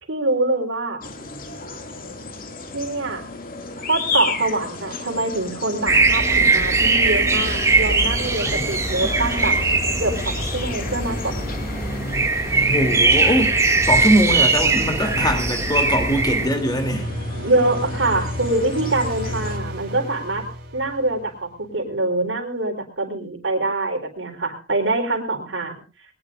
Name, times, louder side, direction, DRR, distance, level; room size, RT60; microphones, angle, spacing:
voice 1, 0.1-1.0 2.7-3.2 3.8-9.5 10.0-11.7 17.4-20.4 20.7-25.7, right 2 dB, 75° right, 5 dB, 3.9 m, -24 dB
sound 1, 1.0-19.6, left 2 dB, 50° left, 2.3 m, -32 dB
sound 2, 5.9-16.5, right 3 dB, 15° right, 2.1 m, -20 dB
voice 2, 8.5-9.1 12.6-17.1, equal, 20° left, 5 dB, 2.9 m, -22 dB
sound 3, 14.4-21.6, equal, 55° right, 6.2 m, -33 dB
21.0 x 19.5 x 2.5 m, 0.34 s
head